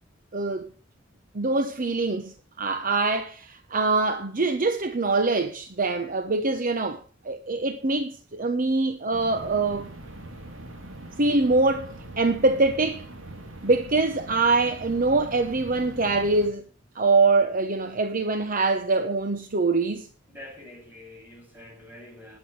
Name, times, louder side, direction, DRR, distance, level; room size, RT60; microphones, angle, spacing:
voice 1, 0.3-0.6 1.3-9.9 11.2-13.1 13.6-16.6 16.9-20.1, right 3 dB, 45° right, 0.9 m, -24 dB
sound 1, 9.1-16.5, right 1 dB, 80° right, 3.1 m, -42 dB
voice 2, 20.3-22.4, left 1 dB, 10° right, 7.8 m, -46 dB
19.5 x 8.4 x 3.3 m
head